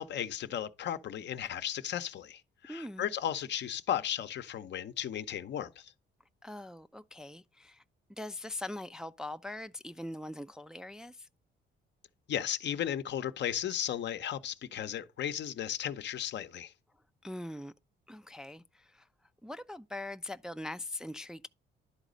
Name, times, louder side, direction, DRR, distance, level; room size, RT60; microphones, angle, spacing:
voice 1, 0.0-5.9 12.3-16.7, left 10 dB, 60° left, 0.7 m, -35 dB
voice 2, 2.7-3.1 6.4-7.8 8.1-11.3 17.2-17.7 18.1-19.1 19.4-21.5, left 1 dB, 5° right, 0.4 m, -42 dB
11.0 x 4.0 x 5.1 m
cardioid pair, 90°, 20 cm